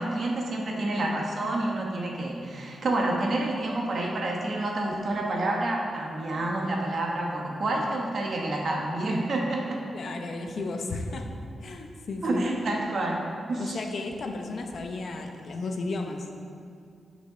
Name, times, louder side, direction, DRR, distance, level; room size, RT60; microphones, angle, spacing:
voice 1, 0.0-9.8 12.2-13.8, right 2 dB, 50° right, -1 dB, 1.1 m, -28 dB
voice 2, 9.9-11.3 11.6-12.4 13.6-16.3, left 3 dB, 55° left, 4 dB, 0.7 m, -34 dB
6.6 x 5.2 x 6.6 m, 2.4 s
wide cardioid pair, 165°, 0 cm